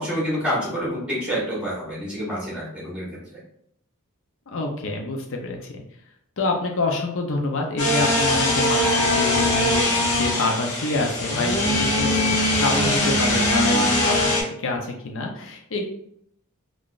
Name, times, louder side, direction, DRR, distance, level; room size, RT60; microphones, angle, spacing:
voice 1, 0.0-3.2 13.7-13.9, equal, 5° right, -6 dB, 1.4 m, -28 dB
voice 2, 4.5-5.8 6.4-15.9, left 2 dB, 60° left, 2 dB, 0.6 m, -27 dB
sound 1, 7.8-14.4, left 1 dB, 75° left, 0.9 m, -21 dB
3.7 x 2.4 x 2.4 m, 0.71 s
head